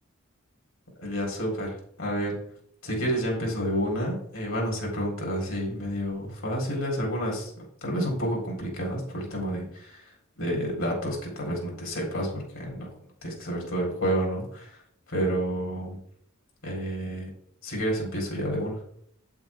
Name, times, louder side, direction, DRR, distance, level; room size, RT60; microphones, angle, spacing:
voice 1, 1.0-2.3 2.8-7.5 7.8-13.0 13.2-14.8 15.1-16.0 16.6-17.3 17.6-18.8, equal, 75° left, -1 dB, 4.1 m, -30 dB
8.6 x 8.1 x 3.6 m, 0.65 s
head